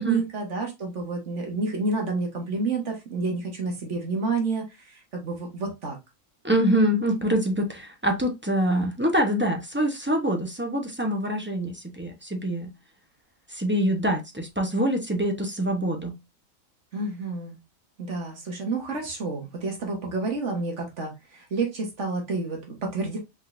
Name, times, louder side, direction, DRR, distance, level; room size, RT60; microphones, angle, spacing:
voice 1, 0.0-6.0 16.9-17.6 18.0-23.2, right 3 dB, 60° right, 1.6 m, -29 dB
voice 2, 6.4-12.7 13.5-16.1, equal, 10° right, 0.7 m, -25 dB
5.2 x 3.8 x 2.5 m
omnidirectional pair, 1.4 m